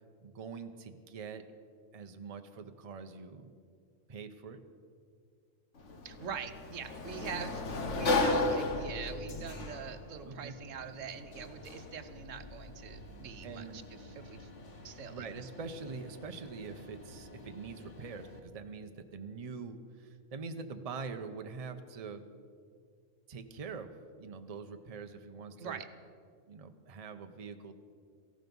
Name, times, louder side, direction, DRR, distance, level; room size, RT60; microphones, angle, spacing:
voice 1, 0.2-1.4 1.9-3.6 4.1-4.6 10.2-10.5 13.4-13.8 15.1-22.2 23.3-25.8 26.5-27.7, right 5 dB, 35° right, 7 dB, 0.8 m, -44 dB
Sliding door, 5.8-18.4, left 2 dB, 65° left, 1.6 m, -37 dB
voice 2, 6.0-14.5 14.8-15.2 25.6-25.9, right 7 dB, 75° right, 9 dB, 1.2 m, -43 dB
18.0 x 14.5 x 5.4 m, 2.3 s
omnidirectional pair, 1.3 m